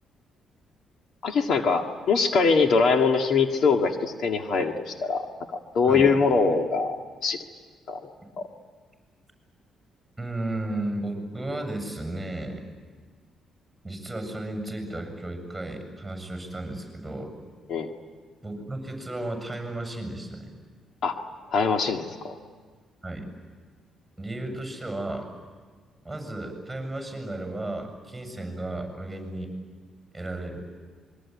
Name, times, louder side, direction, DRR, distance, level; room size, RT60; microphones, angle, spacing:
voice 1, 1.2-5.3 5.7-7.4 7.9-8.0 17.7-17.9 21.0-21.2 21.5-22.3, left 4 dB, 65° left, 4 dB, 1.8 m, -23 dB
voice 2, 10.2-12.6 13.8-17.3 18.4-20.5 23.0-23.3 24.2-25.3 26.0-29.5 30.1-30.6, right 1 dB, 5° right, 5 dB, 7.4 m, -34 dB
26.5 x 23.0 x 9.6 m, 1.5 s
cardioid pair, 100°, 0 cm